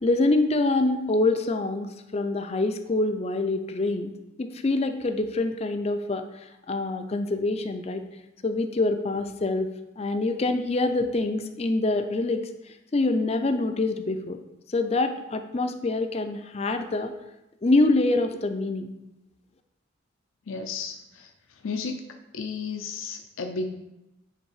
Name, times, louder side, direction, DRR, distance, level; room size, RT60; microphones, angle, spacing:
voice 1, 0.0-4.1 4.4-6.2 6.7-8.0 8.4-9.7 10.0-12.5 12.9-14.4 14.7-17.1 17.6-18.9, left 2 dB, 30° left, 7 dB, 0.4 m, -25 dB
voice 2, 20.5-21.3 21.6-22.0 22.3-23.7, left 4 dB, 90° left, 5 dB, 0.6 m, -33 dB
9.2 x 3.5 x 4.7 m, 0.93 s
head